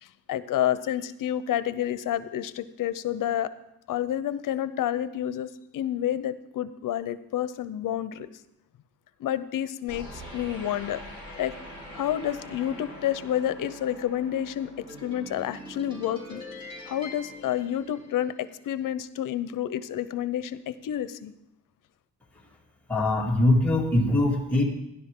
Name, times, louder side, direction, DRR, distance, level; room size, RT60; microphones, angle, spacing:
voice 1, 0.0-3.5 3.9-8.3 9.2-11.0 11.4-11.5 11.9-14.7 15.0-16.4 16.9-21.3, left 11 dB, 75° left, 14 dB, 0.7 m, -29 dB
sound 1, 9.9-18.4, equal, 15° right, 4.3 m, -43 dB
voice 2, 22.9-24.6, left 1 dB, 5° left, -4 dB, 2.1 m, -22 dB
16.5 x 10.5 x 3.7 m, 0.86 s
wide cardioid pair, 170°, 32 cm